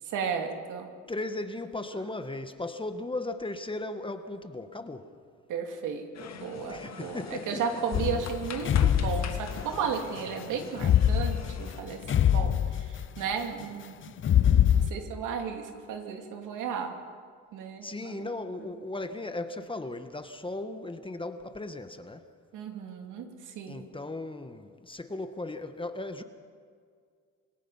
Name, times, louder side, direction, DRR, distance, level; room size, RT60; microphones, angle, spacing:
voice 1, 0.1-0.9 5.5-14.0 14.4-17.0 17.5-18.3 22.5-23.9, right 6 dB, 85° right, 2.6 m, -34 dB
voice 2, 1.1-5.2 6.7-7.6 17.8-22.3 23.7-26.2, left 2 dB, 15° left, 1.4 m, -37 dB
sound 1, 6.1-11.8, left 7 dB, 60° left, 2.0 m, -44 dB
sound 2, 7.9-9.9 10.8-13.2 14.2-14.9, left 10 dB, 40° left, 0.6 m, -24 dB
26.5 x 19.0 x 5.6 m
cardioid pair, 90°, 30 cm